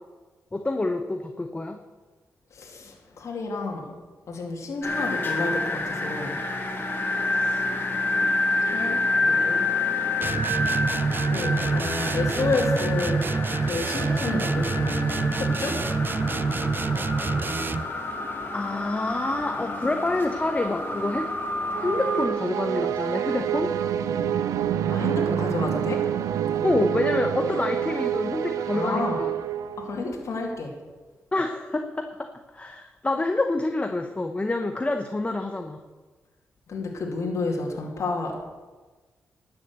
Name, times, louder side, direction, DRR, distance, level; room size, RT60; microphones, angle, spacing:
voice 1, 0.5-1.8 7.3-7.7 18.5-21.3 21.8-23.7 26.6-29.3 31.3-32.3 32.5-35.8, left 2 dB, 20° left, 6 dB, 0.9 m, -27 dB
voice 2, 2.5-4.0 4.3-6.4 8.6-9.7 11.2-13.3 13.6-15.8 17.8-18.2 24.9-26.1 28.7-29.2 29.8-30.8 36.7-38.5, left 3 dB, 65° left, 0 dB, 2.3 m, -31 dB
sound 1, 4.8-22.3, left 2 dB, 40° left, 2.5 m, -28 dB
sound 2, 10.2-18.0, right 4 dB, 40° right, 0.6 m, -27 dB
sound 3, 21.7-30.2, right 9 dB, 90° right, 0.6 m, -27 dB
12.0 x 7.2 x 8.0 m, 1.3 s
cardioid pair, 70°, 5 cm